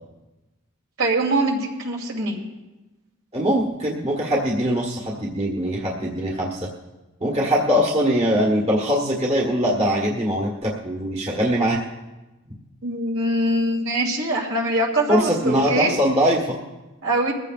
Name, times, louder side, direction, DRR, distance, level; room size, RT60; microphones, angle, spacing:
voice 1, 1.0-2.4 12.8-15.9 17.0-17.3, right 1 dB, 70° right, -1 dB, 2.9 m, -23 dB
voice 2, 3.3-6.7 7.2-11.8 15.1-16.6, equal, 30° right, -2 dB, 1.4 m, -22 dB
21.5 x 15.0 x 2.5 m, 1.1 s
head